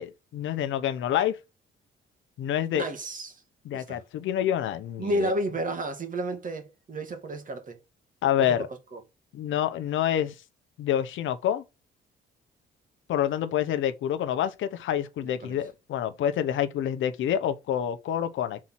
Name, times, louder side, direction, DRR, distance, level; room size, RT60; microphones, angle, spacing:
voice 1, 0.0-1.4 2.4-2.8 3.6-5.3 8.2-8.7 9.3-10.3 10.8-11.6 13.1-18.6, left 10 dB, 75° left, 0.9 m, -27 dB
voice 2, 2.8-3.4 3.7-4.0 5.0-7.8 8.4-8.6 8.9-9.0 15.4-15.6, right 1 dB, 40° right, 2.0 m, -31 dB
6.1 x 4.3 x 5.8 m
cardioid pair, 90°, 20 cm